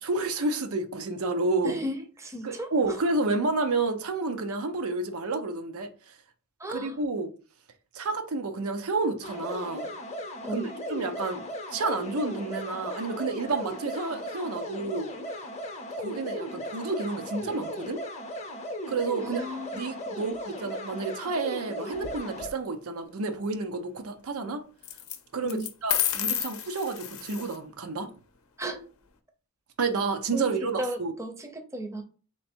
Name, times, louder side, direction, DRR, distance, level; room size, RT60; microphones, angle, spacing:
voice 1, 0.0-1.8 2.4-6.1 6.7-7.3 7.9-9.9 10.5-10.6 10.9-11.4 11.7-15.1 16.0-18.0 18.9-19.4 19.7-24.6 25.3-28.1 29.8-31.1, right 3 dB, 85° right, 0.6 m, -30 dB
voice 2, 1.6-2.7 6.6-6.9 10.4-10.7 19.2-19.7 20.1-20.2 25.4-25.7 28.6-28.8 30.3-32.0, equal, 15° right, 0.6 m, -35 dB
sound 1, 9.2-22.5, equal, 30° left, 0.7 m, -37 dB
sound 2, 22.0-22.5 24.8-25.2 25.5-27.5, left 10 dB, 75° left, 0.6 m, -30 dB
3.2 x 3.2 x 4.3 m
head